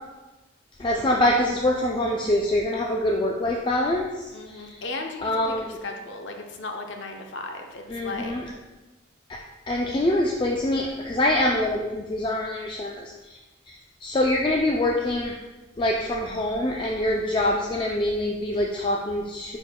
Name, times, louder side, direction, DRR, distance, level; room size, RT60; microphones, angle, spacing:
voice 1, 0.8-4.8 5.2-5.8 7.9-8.4 9.3-9.4 9.7-13.1 13.7-15.4 15.8-19.6, left 1 dB, 25° left, 0 dB, 0.4 m, -25 dB
voice 2, 4.3-8.3, left 3 dB, 70° left, 3 dB, 0.7 m, -36 dB
10.5 x 4.5 x 2.2 m, 1.2 s
head